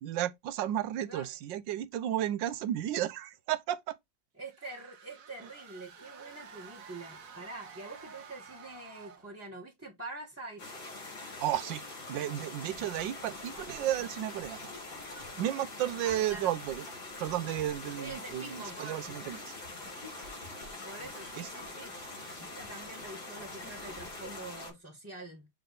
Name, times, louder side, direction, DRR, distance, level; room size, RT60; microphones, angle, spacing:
voice 1, 0.0-4.0 11.4-14.6 15.4-16.8 17.2-19.6 21.4-21.5, right 12 dB, 75° right, 1.3 m, -33 dB
voice 2, 4.4-10.6 16.0-16.6 17.9-19.0 20.8-21.9 22.4-25.5, right 2 dB, 10° right, 1.2 m, -45 dB
sound 1, 4.4-9.4, right 5 dB, 55° right, 1.2 m, -51 dB
sound 2, 10.6-24.7, left 2 dB, 75° left, 4.8 m, -44 dB
sound 3, 12.7-24.8, left 1 dB, 50° left, 4.0 m, -55 dB
7.8 x 3.3 x 4.0 m
omnidirectional pair, 2.1 m